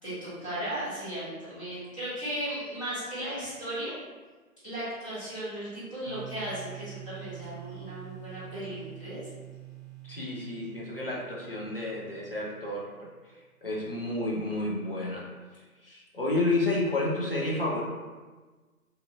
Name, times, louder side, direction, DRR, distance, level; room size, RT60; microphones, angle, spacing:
voice 1, 0.0-3.9 4.6-9.2, right 1 dB, 20° left, -13 dB, 1.1 m, -36 dB
sound 1, 6.1-12.9, right 16 dB, 35° right, 0.8 m, -46 dB
voice 2, 10.0-13.1 13.6-15.3 15.8-17.8, left 2 dB, 40° left, -4 dB, 0.5 m, -30 dB
2.8 x 2.6 x 2.6 m, 1.3 s
hypercardioid pair, 170°, 44 cm